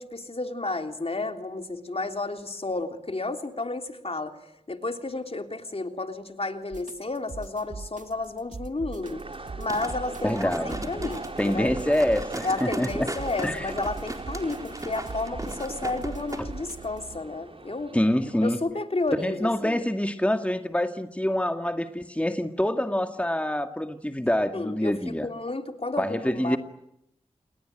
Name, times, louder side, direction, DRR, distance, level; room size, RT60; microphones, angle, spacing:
voice 1, 0.0-4.4 4.7-9.2 9.6-11.7 12.4-18.0 18.4-19.8 24.5-26.6, left 2 dB, 50° left, 5 dB, 3.4 m, -32 dB
sound 1, 6.7-17.2, right 4 dB, 75° right, 1.9 m, -41 dB
sound 2, 9.0-18.4, right 2 dB, 45° right, 4.9 m, -41 dB
sound 3, 9.7-16.4 16.8-16.9, right 1 dB, 25° right, 4.1 m, -37 dB
voice 2, 10.2-10.8 11.4-13.1 13.4-13.7 16.4-16.5 17.9-18.6 19.2-25.3 26.0-26.6, left 1 dB, 10° left, 6 dB, 2.1 m, -26 dB
29.0 x 21.5 x 9.2 m, 0.81 s
cardioid pair, 40°, 13 cm